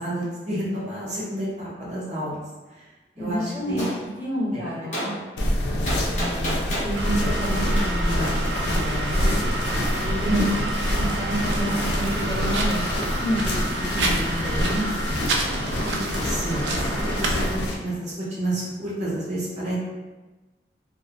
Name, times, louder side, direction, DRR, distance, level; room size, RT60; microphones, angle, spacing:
voice 1, 0.0-2.4 2.7-2.8 3.2-3.8 4.5-4.6 10.3-10.5 15.8-19.7, right 1 dB, 40° right, -8 dB, 0.7 m, -30 dB
voice 2, 3.2-3.8 4.2-5.2 6.1-9.6 10.0-10.3 10.9-15.1, equal, 10° right, -12 dB, 1.0 m, -30 dB
Gunshot gunfire, 3.8-4.0 4.9-5.1 5.9-6.9 7.8-7.9, equal, 40° left, 0.7 m, -28 dB
sound 1, 5.4-17.7, left 1 dB, 75° left, 0.4 m, -26 dB
sound 2, 6.9-17.5, right 2 dB, 85° right, 0.3 m, -30 dB
2.2 x 2.1 x 2.8 m, 1.2 s
head